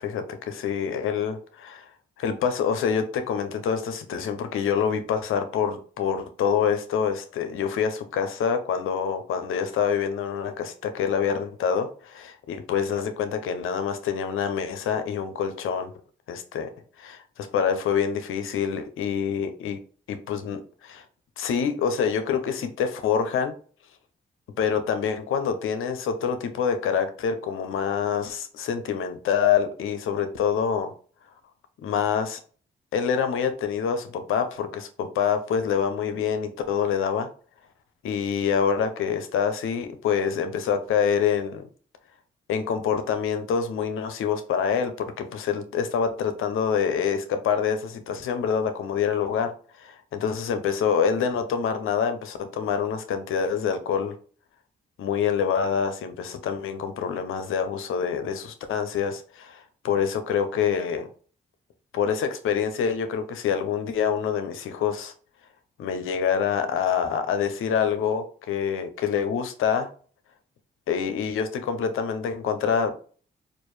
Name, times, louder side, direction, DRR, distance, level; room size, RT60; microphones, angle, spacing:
voice 1, 0.0-1.9 2.2-15.9 16.3-16.7 17.0-19.8 20.1-21.0 21.4-23.5 24.6-30.9 31.8-32.4 32.9-37.3 38.0-41.6 42.5-44.9 45.2-49.5 49.8-54.1 55.0-61.1 61.9-65.1 65.8-69.9 70.9-72.9, left 7 dB, 80° left, 8 dB, 0.7 m, -26 dB
4.3 x 2.5 x 3.2 m, 0.41 s
supercardioid pair, 45°, 21 cm